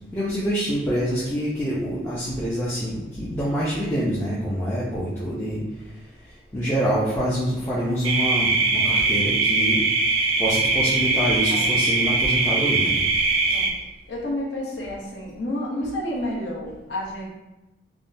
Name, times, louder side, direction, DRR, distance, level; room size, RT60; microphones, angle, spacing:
voice 1, 0.1-5.6 6.5-9.8 10.4-13.0, equal, 10° left, -9 dB, 0.4 m, -26 dB
sound 1, 8.0-13.7, right 3 dB, 85° right, 0.4 m, -21 dB
voice 2, 14.1-17.3, left 1 dB, 65° left, -3 dB, 0.7 m, -30 dB
3.4 x 2.0 x 2.5 m, 1.0 s
head